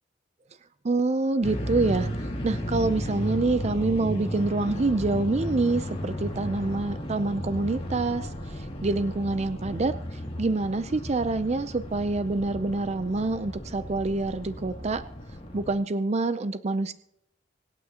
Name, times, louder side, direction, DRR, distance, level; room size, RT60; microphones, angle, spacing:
voice 1, 0.8-2.1 2.4-15.0 15.5-16.9, right 3 dB, 35° right, 12 dB, 0.5 m, -26 dB
sound 1, 1.4-15.7, equal, 30° left, 2.4 m, -34 dB
25.5 x 9.1 x 2.9 m, 0.76 s
head